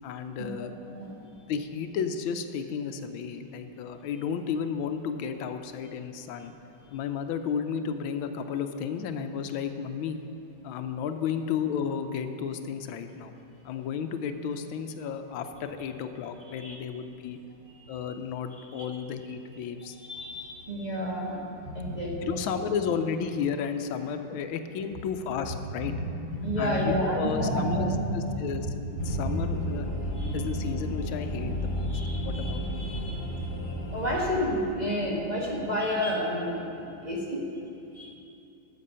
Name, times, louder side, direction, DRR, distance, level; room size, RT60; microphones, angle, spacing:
voice 1, 0.0-1.0 1.5-6.5 6.9-10.2 10.6-13.4 13.6-17.4 17.9-20.0 22.2-25.9 26.6-29.9 30.3-32.9, left 7 dB, 85° left, 8 dB, 1.4 m, -33 dB
voice 2, 17.8-18.1 18.8-18.9 20.0-22.4 25.8-28.0 28.3-28.4 28.9-29.5 30.1-30.4 31.8-33.4 33.9-37.4 37.9-38.1, equal, 25° right, -4 dB, 1.3 m, -31 dB
sound 1, 29.0-34.3, equal, 45° left, 1.1 m, -32 dB
13.5 x 7.4 x 5.5 m, 2.8 s
omnidirectional pair, 2.2 m